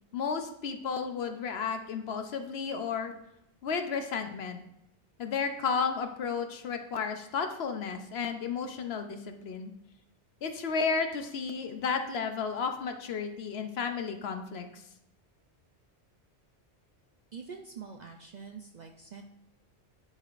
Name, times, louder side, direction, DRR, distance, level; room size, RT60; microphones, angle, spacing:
voice 1, 0.1-3.1 3.6-4.6 5.2-9.7 10.4-14.8, left 5 dB, 65° left, 6 dB, 0.9 m, -33 dB
voice 2, 17.3-19.2, right 6 dB, 55° right, 3 dB, 0.5 m, -45 dB
10.5 x 4.8 x 2.5 m, 0.81 s
omnidirectional pair, 1.2 m